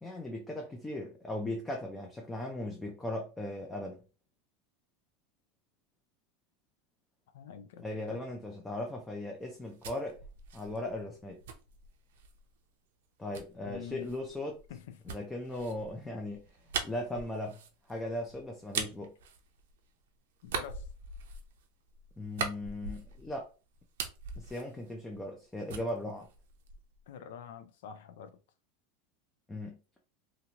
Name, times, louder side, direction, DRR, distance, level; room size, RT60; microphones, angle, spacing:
voice 1, 0.0-4.0 7.8-10.2 10.5-11.4 13.2-14.6 15.1-16.4 16.8-17.6 17.9-19.1 22.2-23.5 24.4-26.3 29.5-29.8, left 1 dB, 10° left, 0.4 m, -38 dB
voice 2, 7.3-8.2 13.6-14.2 14.7-15.2 20.4-20.9 27.1-28.4, left 8 dB, 75° left, 0.5 m, -46 dB
sound 1, 9.4-12.4 13.3-20.0 20.4-23.4 23.7-25.4 25.7-27.0, right 6 dB, 85° right, 0.6 m, -41 dB
2.9 x 2.5 x 2.8 m
supercardioid pair, 155°, 0 cm